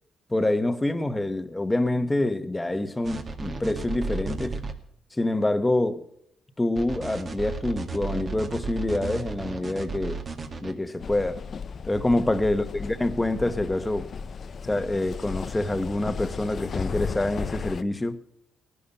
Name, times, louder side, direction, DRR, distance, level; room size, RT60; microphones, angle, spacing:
voice 1, 0.3-4.6 5.1-6.1 6.6-10.2 10.6-11.4 11.8-14.1 14.6-18.2, left 1 dB, 15° left, 1.5 m, -26 dB
sound 1, 3.0-4.7 6.8-10.7, right 3 dB, 40° right, 2.2 m, -33 dB
sound 2, 11.0-17.8, left 6 dB, 50° left, 0.8 m, -35 dB
18.5 x 12.0 x 5.7 m
cardioid pair, 90°, 0 cm